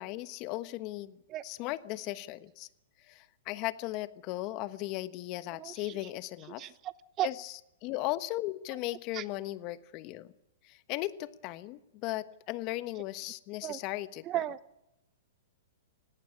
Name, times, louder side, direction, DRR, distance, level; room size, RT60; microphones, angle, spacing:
voice 1, 0.0-1.2 1.4-2.7 3.1-6.7 7.2-7.5 7.8-10.3 10.6-14.2, left 17 dB, 40° left, 14 dB, 1.3 m, -37 dB
voice 2, 5.5-6.0 6.6-7.3 9.1-9.2 13.6-13.8 14.2-14.6, right 14 dB, 30° right, 17 dB, 0.9 m, -35 dB
18.5 x 17.0 x 9.7 m, 0.87 s
hypercardioid pair, 125°, 0 cm